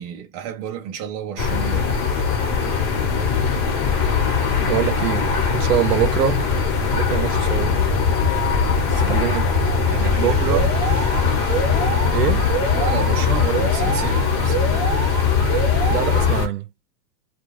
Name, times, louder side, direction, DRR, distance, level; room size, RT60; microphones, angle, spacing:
voice 1, 0.0-2.0 8.8-9.3 9.8-10.8 12.8-14.9, right 8 dB, 20° right, 0.3 m, -32 dB
sound 1, 1.4-16.5, left 5 dB, 45° left, 1.2 m, -20 dB
voice 2, 4.5-6.4 6.9-7.9 9.1-9.5 10.2-10.7 12.1-12.5 15.9-16.7, right 11 dB, 90° right, 0.6 m, -24 dB
sound 2, 7.9-16.1, left 7 dB, 90° left, 1.0 m, -36 dB
Alarm, 10.5-16.5, right 7 dB, 35° right, 0.9 m, -28 dB
2.4 x 2.3 x 3.1 m
hypercardioid pair, 130°, 47 cm